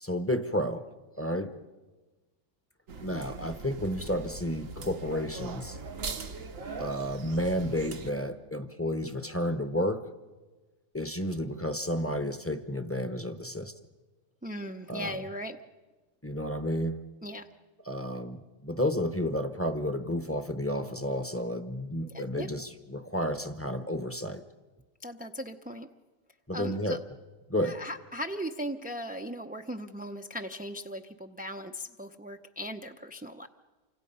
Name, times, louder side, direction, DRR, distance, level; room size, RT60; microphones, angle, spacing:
voice 1, 0.0-0.9 1.2-1.5 3.0-5.8 6.8-10.0 10.9-13.7 14.9-15.2 16.2-17.0 17.9-24.4 26.5-27.0 27.5-27.8, equal, 15° left, 10 dB, 0.8 m, -31 dB
sound 1, 2.9-8.1, right 4 dB, 85° right, 1.7 m, -40 dB
voice 2, 14.4-15.6 17.2-17.5 22.0-22.5 25.0-25.9 26.5-27.0 27.6-33.5, equal, 15° right, 4 dB, 0.4 m, -38 dB
28.5 x 25.5 x 5.5 m, 1.3 s
omnidirectional pair, 1.3 m